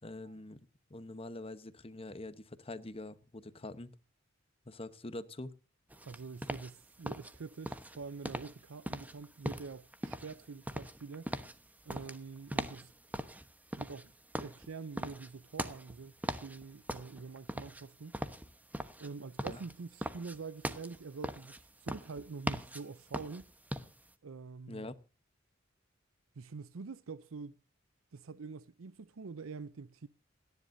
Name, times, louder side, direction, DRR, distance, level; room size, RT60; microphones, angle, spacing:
voice 1, 0.0-3.9 4.7-5.5 19.5-19.6 24.7-24.9, left 2 dB, 30° left, 1.0 m, -45 dB
sound 1, 5.9-24.1, right 1 dB, 10° right, 1.1 m, -41 dB
voice 2, 6.0-11.3 11.8-12.9 13.8-14.1 14.4-18.1 19.0-23.5 24.2-24.9 26.4-27.6 28.1-30.1, right 4 dB, 85° right, 0.6 m, -46 dB
28.0 x 10.5 x 2.7 m
head